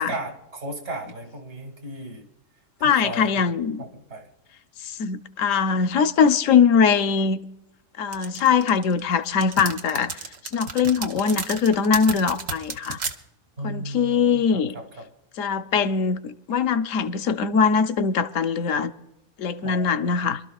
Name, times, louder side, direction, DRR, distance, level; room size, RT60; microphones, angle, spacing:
voice 1, 0.0-2.3 2.8-3.5 3.8-4.3 13.6-15.1 19.6-20.2, right 1 dB, 60° right, 2.7 m, -35 dB
voice 2, 2.8-3.8 4.8-7.4 8.0-13.0 13.6-14.7 15.4-18.9 19.4-20.4, left 6 dB, 75° left, 1.1 m, -22 dB
sound 1, 8.1-13.1, right 5 dB, 80° right, 1.4 m, -32 dB
27.0 x 12.5 x 2.4 m
omnidirectional pair, 1.4 m